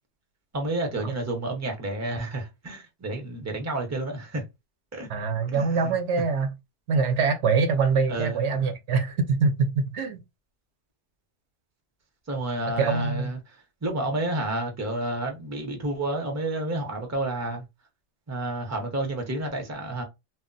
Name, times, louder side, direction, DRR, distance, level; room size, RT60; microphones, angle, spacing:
voice 1, 0.5-4.4 4.9-5.1 5.5-6.0 8.1-8.4 12.3-17.7 18.3-20.0, right 2 dB, 20° right, 0.6 m, -30 dB
voice 2, 5.1-6.5 6.9-10.2 12.8-13.3, right 4 dB, 80° right, 0.9 m, -24 dB
2.2 x 2.1 x 3.8 m
omnidirectional pair, 1.2 m